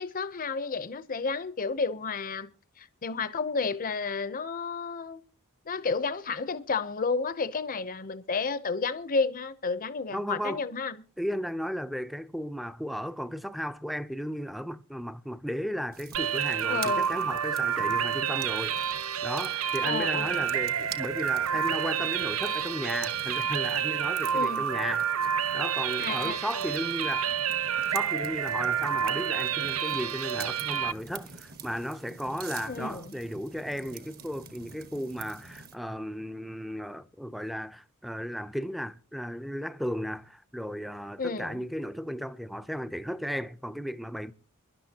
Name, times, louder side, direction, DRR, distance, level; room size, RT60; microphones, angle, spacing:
voice 1, 0.0-2.5 2.8-5.2 5.7-11.0 16.7-17.1 19.8-20.4 24.3-24.6 26.0-26.5 32.6-33.1 41.2-41.6, left 4 dB, 40° left, 0.7 m, -31 dB
voice 2, 10.1-10.6 11.2-18.8 19.2-27.3 27.9-44.3, equal, ahead, 0.6 m, -35 dB
sound 1, 15.9-35.8, right 5 dB, 45° right, 1.5 m, -46 dB
sound 2, 16.1-30.9, right 8 dB, 70° right, 0.6 m, -29 dB
23.0 x 11.5 x 2.9 m
head